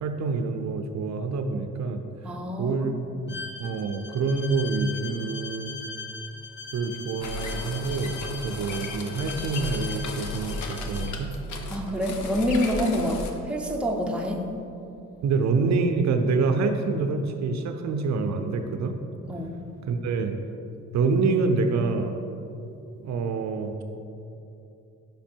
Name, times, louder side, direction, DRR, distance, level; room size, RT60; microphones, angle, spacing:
voice 1, 0.0-2.0 2.6-3.3 3.6-5.7 6.7-8.1 8.4-11.3 15.2-19.0 19.9-20.4 20.9-22.2 23.0-23.8, right 4 dB, 65° right, 6 dB, 0.5 m, -26 dB
voice 2, 2.2-2.9 11.7-14.4 19.3-19.6, equal, 5° right, 1 dB, 0.7 m, -27 dB
Bowed string instrument, 3.3-11.2, left 4 dB, 35° left, 0.7 m, -40 dB
sound 1, 7.2-13.3, left 2 dB, 75° left, 0.8 m, -35 dB
6.0 x 5.3 x 4.4 m, 2.7 s
cardioid pair, 90°, 30 cm